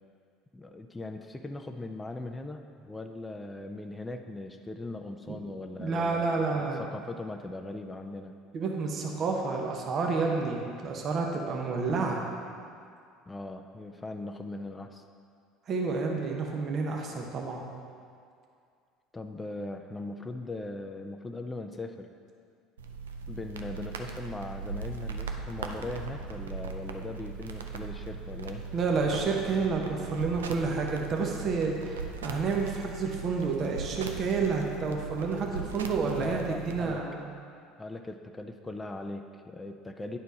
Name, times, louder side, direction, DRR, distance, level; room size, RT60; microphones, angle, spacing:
voice 1, 0.5-8.3 13.3-15.0 19.1-22.1 23.3-28.7 36.2-37.0 37.8-40.2, left 2 dB, 15° left, 5 dB, 0.4 m, -39 dB
voice 2, 5.8-6.8 8.5-12.2 15.7-17.6 28.7-37.2, right 4 dB, 45° right, 0 dB, 1.0 m, -30 dB
sound 1, 22.8-36.8, right 4 dB, 90° right, 0.4 m, -39 dB
9.4 x 4.3 x 4.1 m, 2.3 s
hypercardioid pair, 70°, 0 cm